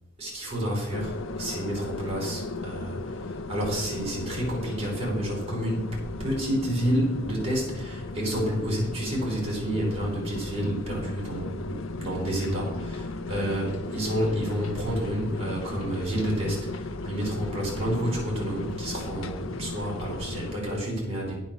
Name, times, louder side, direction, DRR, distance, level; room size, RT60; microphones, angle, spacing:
voice 1, 0.2-21.3, equal, 30° right, -4 dB, 5.3 m, -30 dB
sound 1, 0.9-20.6, left 3 dB, 85° left, 0.7 m, -36 dB
10.0 x 8.8 x 7.0 m, 0.95 s
head